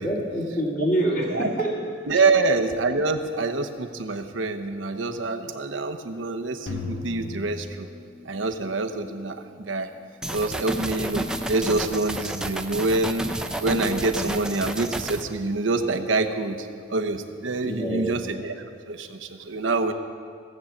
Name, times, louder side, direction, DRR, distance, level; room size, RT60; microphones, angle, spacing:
voice 1, 0.0-1.8 2.1-2.2 17.6-18.1, right 1 dB, 40° left, -5 dB, 2.3 m, -26 dB
voice 2, 1.3-1.7 2.1-7.9 8.2-9.9 10.3-13.2 13.6-18.6 18.9-19.9, right 3 dB, 85° right, 6 dB, 0.9 m, -26 dB
sound 1, 6.7-8.8, left 2 dB, 70° left, 1.6 m, -36 dB
sound 2, 10.2-15.2, right 1 dB, 5° right, 0.4 m, -30 dB
16.5 x 7.8 x 7.3 m, 2.2 s
head